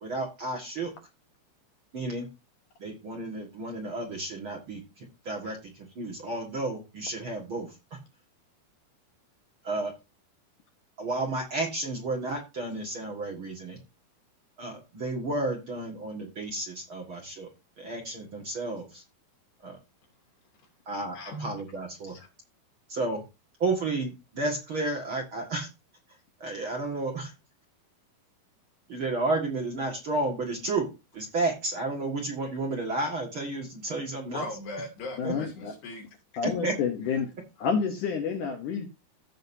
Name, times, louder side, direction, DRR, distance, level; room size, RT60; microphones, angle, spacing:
voice 1, 0.0-0.9 1.9-2.3 2.8-7.7 9.6-9.9 11.0-13.8 14.6-17.5 17.8-19.0 19.6-19.8 20.9-22.1 22.9-23.2 23.6-25.7 26.4-27.3 28.9-30.9 31.1-34.5 35.2-35.3 36.4-36.7, right 2 dB, 45° right, 1.9 m, -32 dB
voice 2, 21.1-21.5 22.2-22.3 34.3-36.1, left 2 dB, 85° left, 4.8 m, -38 dB
voice 3, 35.2-35.7 36.4-37.3 37.6-38.9, left 6 dB, 65° left, 2.2 m, -29 dB
16.0 x 6.5 x 2.7 m
omnidirectional pair, 4.6 m